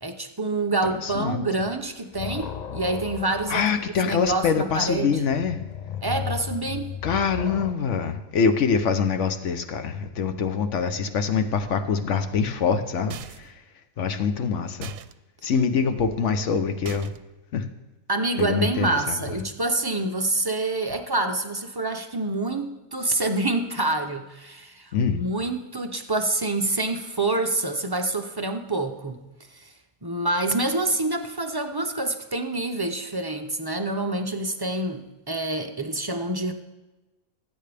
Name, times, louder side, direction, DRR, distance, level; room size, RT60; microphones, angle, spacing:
voice 1, 0.0-5.2 6.0-6.9 18.1-29.2 29.5-29.7 30.0-36.5, right 2 dB, 30° right, 5 dB, 0.4 m, -27 dB
voice 2, 1.0-1.5 3.5-5.6 7.0-13.6 14.0-14.9 15.4-17.1 17.5-17.7 18.4-19.2 24.9-25.2, left 6 dB, 60° left, 8 dB, 1.1 m, -24 dB
sound 1, 1.1-1.5 1.8-7.7, left 8 dB, 85° left, 0.3 m, -36 dB
sound 2, 13.1-13.6 14.8-15.1 16.9-17.4, right 11 dB, 70° right, 0.9 m, -40 dB
20.0 x 8.7 x 3.4 m, 1.1 s
omnidirectional pair, 1.5 m